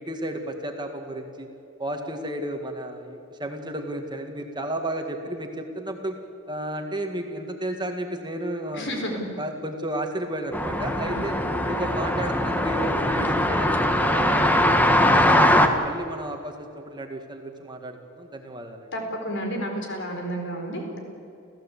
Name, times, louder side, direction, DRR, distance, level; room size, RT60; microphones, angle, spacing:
voice 1, 0.0-1.5 1.8-6.2 6.5-9.0 9.4-11.4 11.6-18.9, right 1 dB, 20° right, 4 dB, 1.8 m, -33 dB
voice 2, 8.7-9.3 11.1-11.2 18.9-21.0, equal, 60° left, 3 dB, 4.4 m, -31 dB
sound 1, 10.5-15.7, left 1 dB, 10° left, 1.4 m, -21 dB
29.0 x 15.0 x 8.4 m, 2.5 s
head